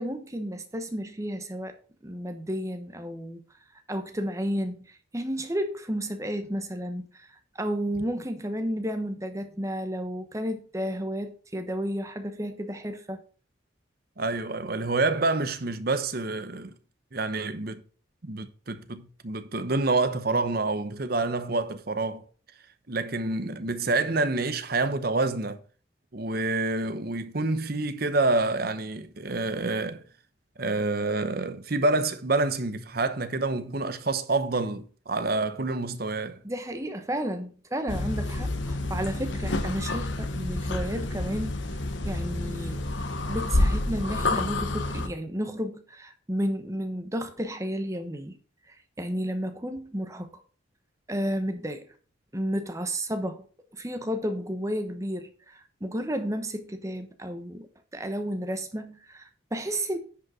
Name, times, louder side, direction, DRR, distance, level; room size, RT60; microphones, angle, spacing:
voice 1, 0.0-1.8 2.0-3.4 3.9-13.2 36.4-41.8 42.0-42.9 43.3-48.4 48.7-50.4 51.1-51.9 52.3-53.5 53.7-60.0, equal, 15° right, 1.0 m, -32 dB
voice 2, 14.2-16.7 17.1-17.8 18.2-22.2 22.9-25.6 26.1-30.0 30.6-36.4, right 3 dB, 50° right, 0.9 m, -27 dB
sound 1, 37.9-45.1, left 2 dB, 65° left, 1.1 m, -29 dB
10.0 x 5.4 x 5.0 m
head